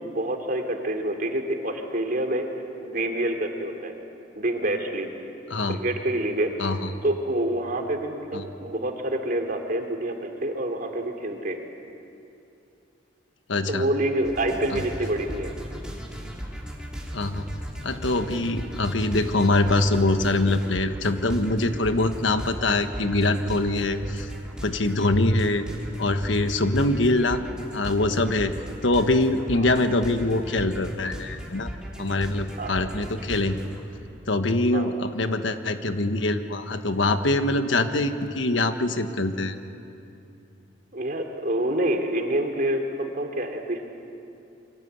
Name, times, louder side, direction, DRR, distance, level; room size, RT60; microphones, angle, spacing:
voice 1, 0.0-2.5 2.8-3.9 4.4-5.1 5.7-6.5 7.0-11.6 13.6-15.5 29.5-29.7 32.6-32.8 34.7-34.9 40.9-43.8, right 1 dB, 50° right, 3 dB, 2.9 m, -27 dB
voice 2, 13.5-13.9 17.1-17.5 17.8-24.3 24.6-25.7 26.0-27.4 27.7-28.5 28.8-31.7 32.0-33.6 34.3-39.6, left 2 dB, 85° left, 8 dB, 1.4 m, -23 dB
sound 1, 14.2-33.8, equal, 5° right, 3.5 m, -37 dB
28.5 x 24.0 x 8.2 m, 2.7 s
head